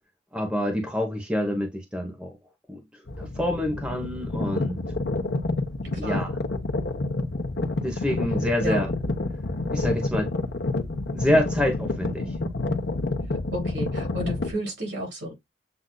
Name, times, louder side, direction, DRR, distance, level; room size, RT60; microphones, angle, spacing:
voice 1, 0.3-2.3 2.7-2.8 3.2-4.8 5.9-6.4 7.8-8.9 9.7-10.3 11.1-12.3, left 1 dB, 5° right, 0.9 m, -27 dB
sound 1, 3.1-14.5, left 2 dB, 65° left, 0.9 m, -28 dB
voice 2, 5.9-6.3 8.6-8.9 13.5-15.3, right 1 dB, 70° right, 3.9 m, -32 dB
7.8 x 2.6 x 2.2 m
head